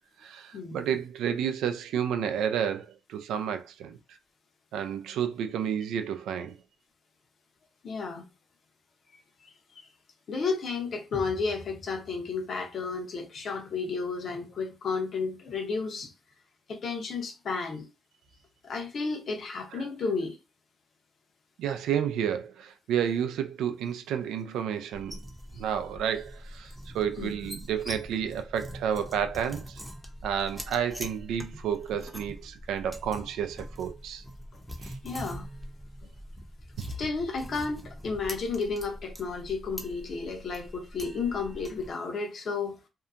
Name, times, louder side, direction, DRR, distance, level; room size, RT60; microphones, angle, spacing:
voice 1, 0.2-4.0 4.7-6.6 19.7-19.8 21.6-25.2 25.5-29.8 30.2-34.2 34.8-34.9, right 8 dB, 85° right, 0.4 m, -31 dB
voice 2, 7.8-8.2 9.4-9.9 10.3-16.1 16.7-17.9 18.6-20.4 27.2-27.5 35.0-35.5 36.0-36.1 37.0-42.7, left 4 dB, 55° left, 0.8 m, -32 dB
sound 1, 24.9-41.9, equal, ahead, 0.6 m, -43 dB
2.7 x 2.2 x 2.4 m
cardioid pair, 90°, 0 cm